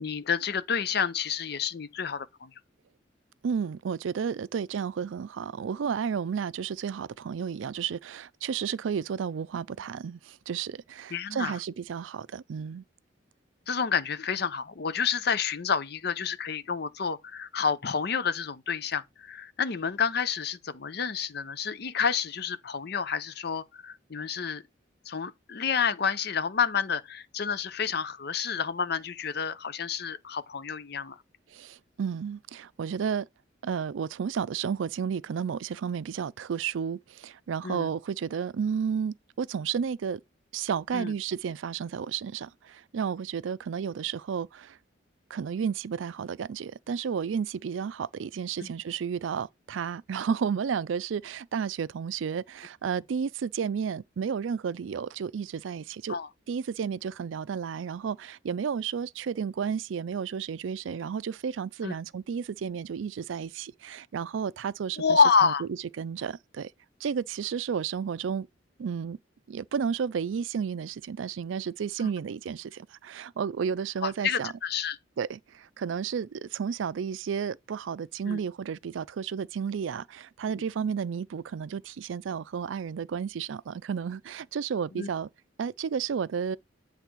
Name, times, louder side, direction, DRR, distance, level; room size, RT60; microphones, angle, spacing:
voice 1, 0.0-2.5 11.1-11.6 13.7-24.6 25.1-31.2 37.6-37.9 40.9-41.1 48.6-48.7 56.1-56.3 61.8-62.0 65.0-65.6 74.0-75.0 78.3-78.4 84.9-85.1, left 6 dB, 55° left, 0.6 m, -29 dB
voice 2, 3.4-12.8 31.5-33.3 33.6-40.2 40.5-44.8 45.3-56.2 56.5-65.5 66.0-66.7 67.0-68.5 68.8-69.2 69.5-74.5 75.2-85.3 85.6-86.6, right 7 dB, 80° right, 0.4 m, -32 dB
8.2 x 3.4 x 6.1 m
head